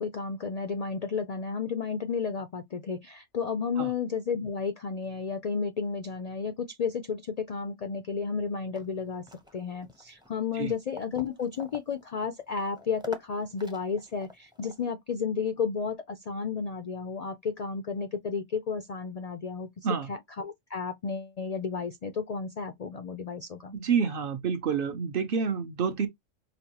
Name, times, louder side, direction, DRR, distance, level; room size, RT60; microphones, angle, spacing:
voice 1, 0.0-9.2 9.5-19.7 20.1-23.8, left 5 dB, 70° left, 0.3 m, -32 dB
sound 1, 8.7-14.9, left 1 dB, 5° right, 0.4 m, -48 dB
voice 2, 23.7-26.1, right 6 dB, 55° right, 0.7 m, -28 dB
5.0 x 2.2 x 2.8 m
omnidirectional pair, 1.3 m